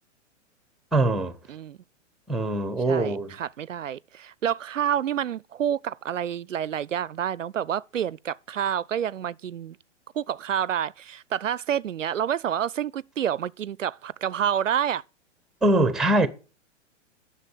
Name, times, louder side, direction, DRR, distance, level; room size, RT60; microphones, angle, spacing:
voice 1, 0.9-1.3 2.3-3.3 15.6-16.3, right 2 dB, ahead, 0.9 m, -22 dB
voice 2, 2.9-9.8 10.1-15.0, right 9 dB, 85° right, 0.5 m, -28 dB
9.3 x 6.5 x 8.3 m
figure-of-eight pair, 110°, 37 cm